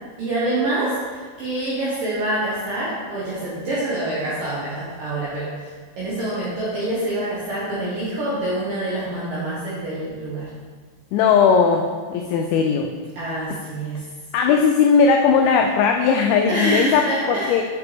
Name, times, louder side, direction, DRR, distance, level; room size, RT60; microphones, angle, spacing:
voice 1, 0.2-10.5 13.2-14.0 16.5-17.6, right 1 dB, 70° right, -8 dB, 2.2 m, -26 dB
voice 2, 11.1-12.9 14.3-17.0 17.3-17.6, left 6 dB, 90° left, 3 dB, 2.6 m, -18 dB
9.0 x 5.8 x 3.5 m, 1.5 s
omnidirectional pair, 5.8 m